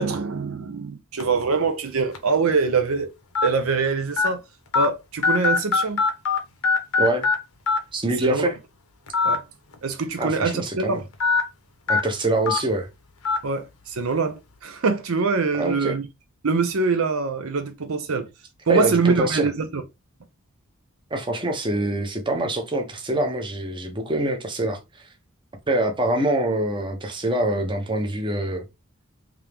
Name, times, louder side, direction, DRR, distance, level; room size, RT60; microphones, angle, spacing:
voice 1, 0.0-3.1 3.4-4.4 4.7-6.0 8.2-8.5 9.2-9.4 9.8-11.1 13.4-16.1 16.4-18.3 18.7-19.8, right 4 dB, 70° right, 0.7 m, -24 dB
sound 1, 1.2-1.4 2.1-2.2 3.4-3.5 4.2-4.3 4.7-4.9 5.2-6.4 6.6-7.4 7.7-7.8 9.1-9.4 9.7-9.8 11.2-11.4 11.9-12.0 12.5-12.6 13.3-13.4, left 4 dB, 85° left, 1.0 m, -20 dB
voice 2, 7.9-8.5 10.2-11.0 11.9-12.9 15.6-16.0 18.7-19.5 21.1-25.0 25.7-28.6, right 1 dB, 20° right, 0.9 m, -25 dB
3.6 x 2.9 x 3.4 m
head